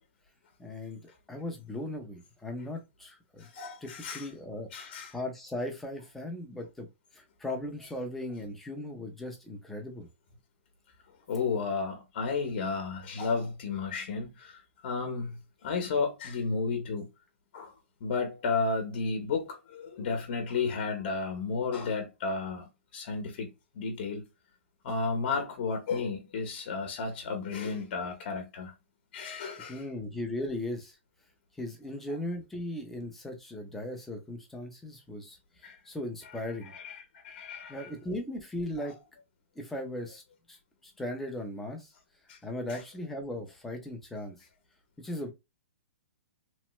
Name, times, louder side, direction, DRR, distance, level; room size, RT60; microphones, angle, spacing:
voice 1, 0.6-3.5 3.8-6.9 7.1-10.1 29.7-31.0 31.6-36.7 37.7-39.0 39.6-40.2 40.5-40.6 40.8-41.9 42.4-44.4 45.0-45.3, left 1 dB, 5° left, 0.6 m, -38 dB
voice 2, 3.4-4.3 4.7-5.1 11.3-17.1 17.5-17.7 18.0-23.5 23.7-24.2 24.8-28.7 29.1-29.8 35.6-35.8 36.7-37.9 38.8-38.9 42.3-42.4, left 4 dB, 45° left, 0.9 m, -33 dB
3.1 x 2.1 x 3.0 m
hypercardioid pair, 165°, 7 cm